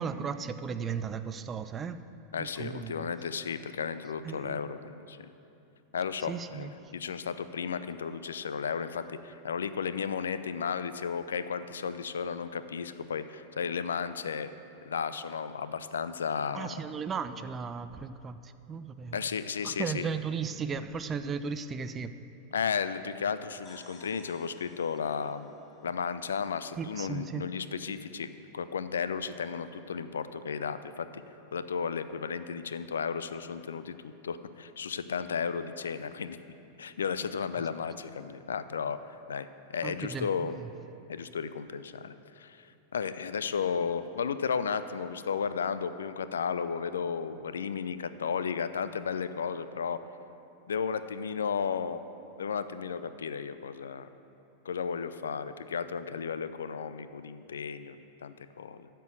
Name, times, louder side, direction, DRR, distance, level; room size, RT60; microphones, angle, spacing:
voice 1, 0.0-2.0 2.4-3.1 4.2-4.6 6.2-6.7 16.5-19.2 19.6-22.1 26.8-27.4 39.8-40.7, right 6 dB, 20° right, 11 dB, 0.4 m, -36 dB
voice 2, 2.3-5.3 5.9-14.5 14.8-16.8 19.1-20.1 22.5-25.5 25.8-28.3 28.5-31.2 31.5-36.4 36.8-40.6 41.1-50.0 50.7-52.1 52.4-54.1 54.6-58.9, left 6 dB, 65° left, 13 dB, 0.4 m, -34 dB
sound 1, 23.6-27.3, left 1 dB, 25° left, 1.4 m, -58 dB
13.0 x 4.5 x 7.8 m, 2.8 s
figure-of-eight pair, 90°, 0 cm